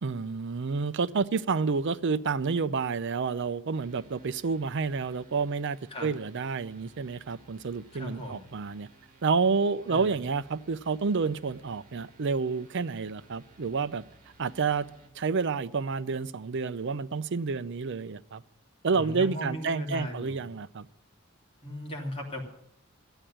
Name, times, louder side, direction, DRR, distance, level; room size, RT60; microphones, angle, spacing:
voice 1, 0.0-8.9 9.2-14.0 14.4-14.9 15.2-18.4 18.8-20.9, right 4 dB, 60° right, 0.6 m, -29 dB
sound 1, 3.7-15.1, right 3 dB, 40° right, 2.6 m, -59 dB
voice 2, 7.9-8.4 9.9-10.2 18.9-20.5 21.6-22.4, left 1 dB, 30° left, 3.1 m, -37 dB
12.5 x 9.0 x 10.0 m
head